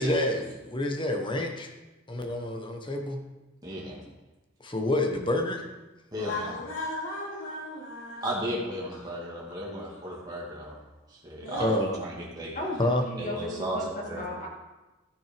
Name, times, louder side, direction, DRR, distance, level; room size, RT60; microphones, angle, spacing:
voice 1, 0.0-1.7 2.1-3.2 4.6-5.6 11.6-12.0 12.8-13.0, left 1 dB, 25° left, 3 dB, 1.2 m, -28 dB
voice 2, 3.6-4.0 6.1-6.6 8.2-10.8 11.1-12.5 13.2-14.2, right 1 dB, 20° right, -5 dB, 2.1 m, -34 dB
voice 3, 6.2-8.3 9.6-9.7 10.1-10.2 11.4-11.8, left 2 dB, 65° left, -5 dB, 3.1 m, -36 dB
voice 4, 12.5-14.5, left 1 dB, 40° left, -2 dB, 2.6 m, -35 dB
13.5 x 6.4 x 5.2 m, 1.1 s
head